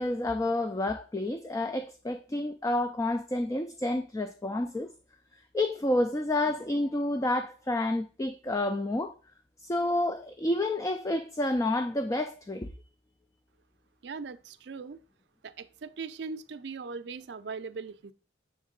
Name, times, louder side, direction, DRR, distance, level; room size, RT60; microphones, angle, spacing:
voice 1, 0.0-4.9 5.5-9.1 9.6-12.7, left 1 dB, 20° left, 0.3 m, -29 dB
voice 2, 14.0-15.0 15.4-18.1, right 4 dB, 65° right, 0.4 m, -40 dB
7.1 x 3.6 x 3.8 m
head